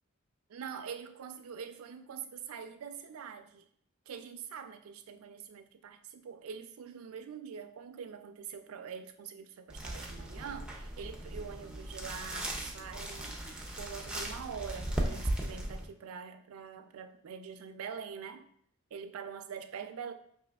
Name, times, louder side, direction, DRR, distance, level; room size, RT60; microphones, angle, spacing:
voice 1, 0.5-3.6 4.1-13.4 13.8-18.5 18.9-20.1, right 6 dB, 85° right, 8 dB, 0.4 m, -44 dB
sound 1, 9.7-15.9, right 1 dB, 5° right, 0.4 m, -37 dB
4.9 x 2.8 x 2.2 m, 0.64 s
head